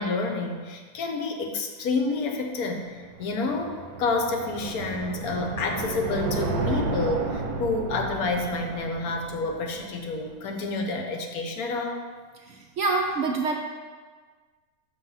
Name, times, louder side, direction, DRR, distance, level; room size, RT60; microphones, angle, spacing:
voice 1, 0.0-2.8 3.2-12.0, left 3 dB, 75° left, 3 dB, 1.2 m, -29 dB
sound 1, 2.8-10.2, right 3 dB, 90° right, 1.2 m, -32 dB
voice 2, 12.5-13.5, right 3 dB, 60° right, 1 dB, 0.8 m, -26 dB
6.4 x 3.3 x 5.5 m, 1.5 s
omnidirectional pair, 1.6 m